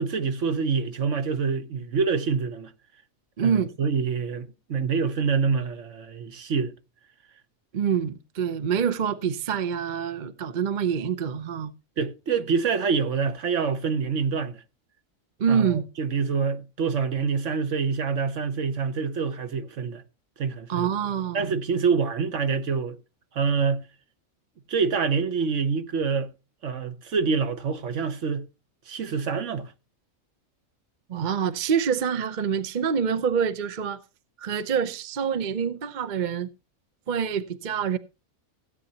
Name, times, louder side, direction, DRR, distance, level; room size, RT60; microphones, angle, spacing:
voice 1, 0.0-2.7 3.4-6.7 12.0-14.6 15.5-20.0 20.4-20.9 21.3-23.0 23.3-23.9 24.7-26.3 26.6-28.5 28.9-29.7, right 5 dB, 60° right, 1.3 m, -26 dB
voice 2, 3.4-3.7 7.7-11.7 15.4-15.8 20.7-21.6 31.1-34.0 34.4-36.5 37.1-38.0, right 7 dB, 40° right, 0.7 m, -26 dB
16.5 x 9.1 x 2.8 m
omnidirectional pair, 1.4 m